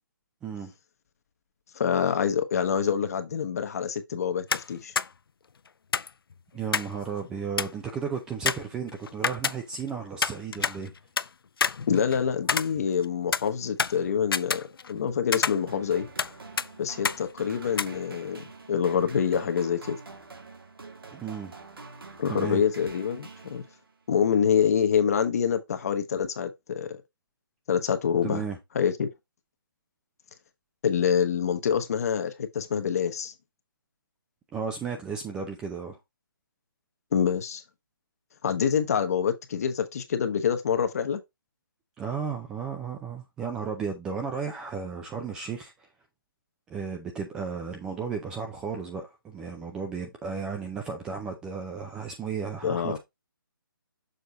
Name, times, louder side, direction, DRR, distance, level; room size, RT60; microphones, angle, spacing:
voice 1, 1.7-4.9 11.9-16.1 16.8-20.0 22.2-23.6 24.1-27.0 27.7-28.4 28.7-29.1 30.8-33.3 37.1-37.6 38.4-41.2 52.6-53.0, left 7 dB, 45° left, 1.0 m, -26 dB
sound 1, 4.5-4.7 5.0-5.1 5.9-7.0 7.2-7.3 7.6-7.9 8.5-9.9 10.2-11.3 11.6-13.0 13.3-15.0 15.3-16.3 16.6-16.7 17.0-17.2 17.8-17.9, left 6 dB, 85° left, 0.4 m, -28 dB
voice 2, 6.5-10.9 21.1-21.5 22.3-22.6 28.2-28.6 34.5-36.0 42.0-45.7 46.7-53.0, right 6 dB, 5° right, 0.4 m, -34 dB
sound 2, 15.7-24.0, right 3 dB, 80° right, 1.9 m, -46 dB
6.8 x 3.8 x 4.0 m
hypercardioid pair, 160°, 12 cm